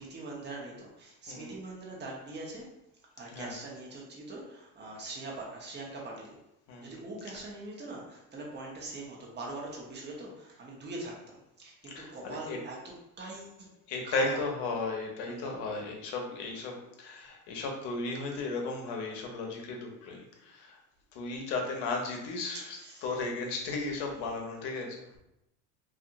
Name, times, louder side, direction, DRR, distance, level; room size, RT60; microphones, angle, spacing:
voice 1, 0.0-2.7 3.2-6.4 6.8-13.7 14.0-14.4 15.2-15.6 22.5-23.1, right 2 dB, 20° right, -2 dB, 0.9 m, -43 dB
voice 2, 6.7-7.1 11.9-12.6 13.9-20.8 21.1-25.2, left 3 dB, 60° left, 1 dB, 0.9 m, -35 dB
2.7 x 2.6 x 2.5 m, 0.84 s
hypercardioid pair, 85°, 47 cm